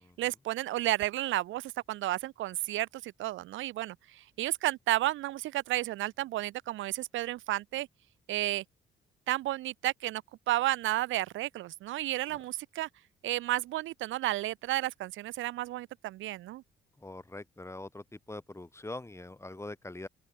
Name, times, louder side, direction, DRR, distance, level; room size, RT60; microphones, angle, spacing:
voice 1, 0.2-7.9 8.3-8.6 9.3-12.9 13.2-16.6, right 16 dB, 75° right, 0.5 m, -32 dB
voice 2, 17.0-20.1, left 2 dB, 15° left, 3.4 m, -43 dB
open air
cardioid pair, 90°, 20 cm